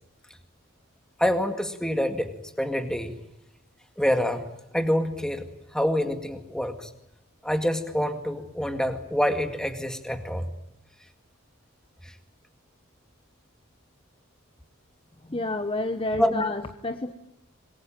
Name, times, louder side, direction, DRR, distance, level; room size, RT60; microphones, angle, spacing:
voice 1, 1.2-3.1 4.0-5.4 5.7-6.9 7.4-10.5 12.0-12.1 16.2-16.5, equal, 5° left, 7 dB, 2.0 m, -26 dB
voice 2, 15.3-17.1, left 2 dB, 25° left, 9 dB, 1.0 m, -29 dB
26.5 x 22.0 x 9.0 m, 0.82 s
head